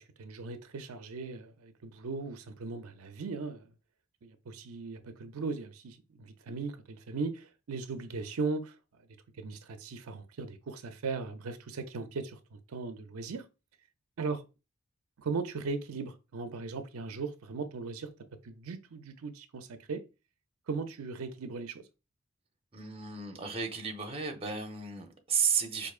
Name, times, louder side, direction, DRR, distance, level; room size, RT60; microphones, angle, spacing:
voice 1, 0.0-3.7 4.2-8.8 9.4-13.4 14.2-14.4 15.2-18.1 18.4-20.0 20.7-21.9, right 4 dB, 80° right, 0.5 m, -38 dB
voice 2, 22.7-25.9, right 6 dB, 25° right, 0.6 m, -33 dB
4.6 x 2.6 x 2.4 m
head